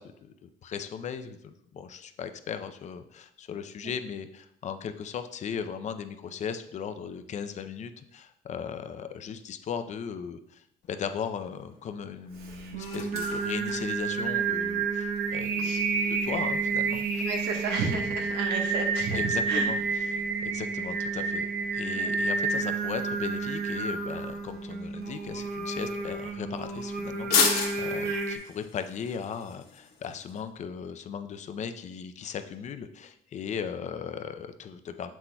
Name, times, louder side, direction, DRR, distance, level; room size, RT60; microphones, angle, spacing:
voice 1, 0.0-15.8 16.1-17.3 19.1-21.5 21.7-35.1, left 7 dB, 45° left, 9 dB, 0.5 m, -37 dB
sound 1, 10.8-30.4, left 5 dB, 70° left, 1.3 m, -38 dB
Singing, 12.4-28.4, right 4 dB, 70° right, 0.9 m, -30 dB
voice 2, 17.2-19.2 19.5-19.7 21.9-22.1 28.0-28.2, right 4 dB, 85° right, 2 dB, 1.1 m, -32 dB
7.2 x 6.1 x 2.3 m, 0.73 s
cardioid pair, 110°, 17 cm